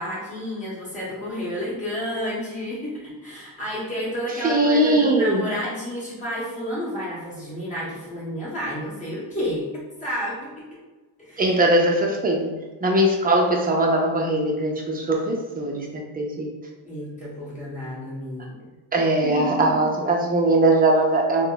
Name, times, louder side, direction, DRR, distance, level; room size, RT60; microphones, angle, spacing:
voice 1, 0.0-9.7 10.0-10.6 11.2-11.5 16.8-18.6 19.3-19.8, equal, 15° left, -7 dB, 1.5 m, -31 dB
voice 2, 4.4-5.4 11.4-12.5 12.8-15.9 16.1-16.5 18.9-21.5, right 1 dB, 20° right, 0 dB, 0.6 m, -20 dB
3.3 x 2.2 x 3.9 m, 1.2 s
cardioid pair, 130°, 44 cm